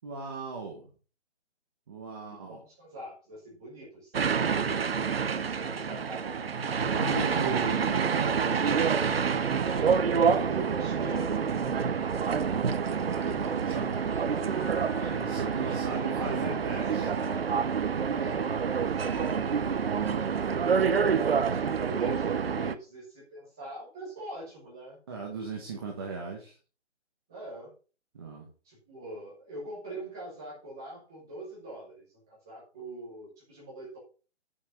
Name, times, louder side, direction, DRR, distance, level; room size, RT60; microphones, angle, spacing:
voice 1, 0.0-0.9 1.9-2.6 6.9-8.4 13.0-13.9 15.1-17.1 25.1-26.6 28.1-28.5, right 4 dB, 20° right, 1 dB, 1.4 m, -37 dB
voice 2, 2.2-4.3 5.4-7.7 8.6-8.9 9.6-11.5 13.2-14.6 15.0-15.2 15.5-17.7 18.1-20.9 21.4-25.0 27.3-27.7 28.6-34.0, right 1 dB, 5° right, -6 dB, 0.7 m, -43 dB
sound 1, 4.1-22.7, right 6 dB, 55° right, 0.9 m, -27 dB
Keyboard (musical), 14.6-16.5 19.8-20.0, left 5 dB, 20° left, 1.2 m, -51 dB
9.8 x 5.7 x 5.5 m, 0.35 s
hypercardioid pair, 175°, 35 cm